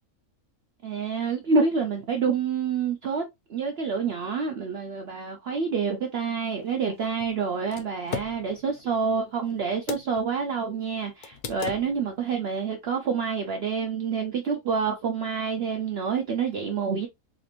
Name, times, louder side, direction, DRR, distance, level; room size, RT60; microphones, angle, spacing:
voice 1, 0.8-3.2 3.5-17.1, right 5 dB, 60° right, 0.7 m, -27 dB
sound 1, 6.5-10.3 10.6-10.7 11.2-12.2, left 5 dB, 70° left, 0.4 m, -38 dB
4.1 x 2.4 x 2.9 m
omnidirectional pair, 1.5 m